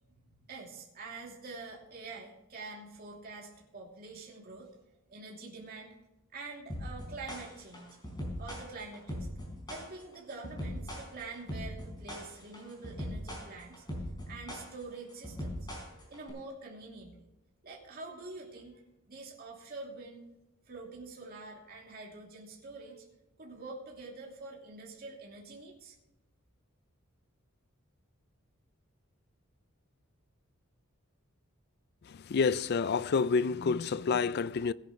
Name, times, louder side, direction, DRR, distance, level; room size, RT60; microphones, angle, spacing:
voice 1, 0.5-4.8 5.1-6.0 6.3-8.0 8.4-9.3 9.7-13.8 14.3-15.7 16.1-17.2 17.6-18.8 19.1-20.3 20.7-23.1 23.4-26.0, right 3 dB, 45° right, 2.9 m, -46 dB
sound 1, 6.7-16.3, equal, 20° left, 4.5 m, -40 dB
voice 2, 32.0-34.7, left 5 dB, 50° left, 0.4 m, -29 dB
17.5 x 10.5 x 3.2 m
head